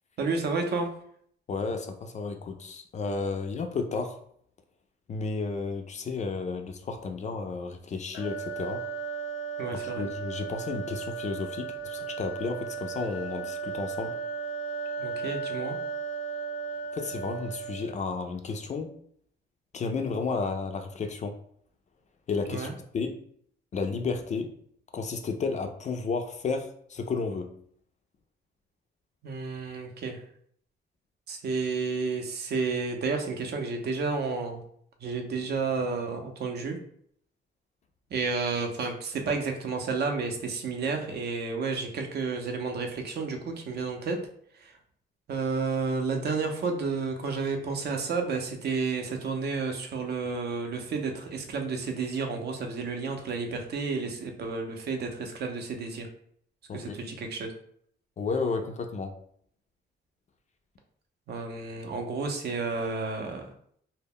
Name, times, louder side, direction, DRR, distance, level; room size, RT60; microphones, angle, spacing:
voice 1, 0.2-0.9 9.6-10.0 15.0-15.8 22.5-22.7 29.2-30.2 31.3-34.6 35.0-36.8 38.1-44.2 44.6-44.7 45.3-56.1 56.7-57.5 61.3-63.5, right 4 dB, 55° right, 3 dB, 0.5 m, -31 dB
voice 2, 1.5-4.2 5.1-8.8 9.7-14.2 16.9-18.9 19.7-21.3 22.3-22.7 22.9-23.2 23.7-24.5 24.9-27.5 56.7-56.9 58.2-59.1, left 4 dB, 35° left, 5 dB, 0.4 m, -32 dB
sound 1, 8.1-18.1, right 5 dB, 90° left, 0.5 m, -35 dB
2.1 x 2.0 x 3.5 m, 0.63 s
cardioid pair, 90°, 20 cm